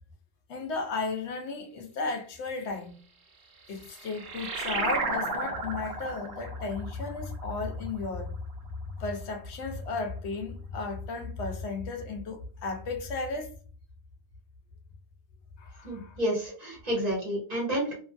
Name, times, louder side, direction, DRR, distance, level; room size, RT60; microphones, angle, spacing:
voice 1, 0.5-3.0 3.7-8.3 9.0-13.5 15.6-16.2, left 3 dB, 85° left, 0.9 m, -34 dB
sound 1, 3.5-8.5, right 3 dB, 80° right, 1.0 m, -34 dB
voice 2, 15.8-17.9, equal, 40° right, 1.4 m, -30 dB
2.8 x 2.5 x 2.2 m
omnidirectional pair, 1.1 m